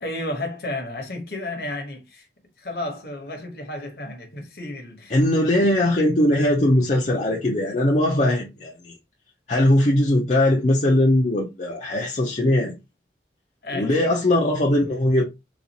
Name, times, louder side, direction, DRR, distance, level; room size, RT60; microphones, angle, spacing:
voice 1, 0.0-2.3 2.6-5.2 13.6-14.1, left 1 dB, 60° left, 1.0 m, -32 dB
voice 2, 5.1-8.9 9.5-12.8 13.7-15.2, left 1 dB, 40° left, 0.6 m, -20 dB
4.0 x 2.4 x 2.8 m
head